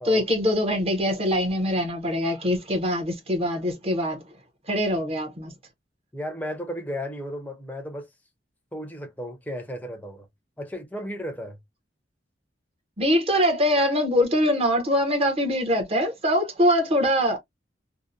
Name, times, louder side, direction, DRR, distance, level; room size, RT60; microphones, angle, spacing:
voice 1, 0.0-4.2 4.7-5.5 13.0-17.4, equal, 35° right, 0.7 m, -23 dB
voice 2, 6.1-8.1 8.7-10.3 10.6-11.6, equal, 10° left, 0.5 m, -34 dB
2.7 x 2.0 x 2.4 m
head